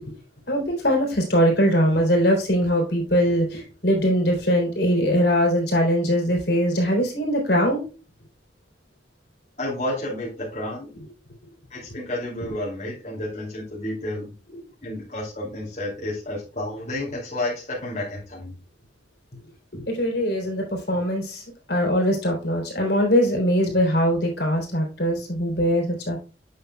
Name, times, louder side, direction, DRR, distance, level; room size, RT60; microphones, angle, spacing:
voice 1, 0.5-7.8 14.5-14.6 19.7-26.2, equal, 65° left, 0 dB, 3.2 m, -22 dB
voice 2, 9.6-10.9 11.7-14.2 14.8-18.5, left 1 dB, 40° left, -5 dB, 2.6 m, -31 dB
8.4 x 7.0 x 2.3 m, 0.34 s
head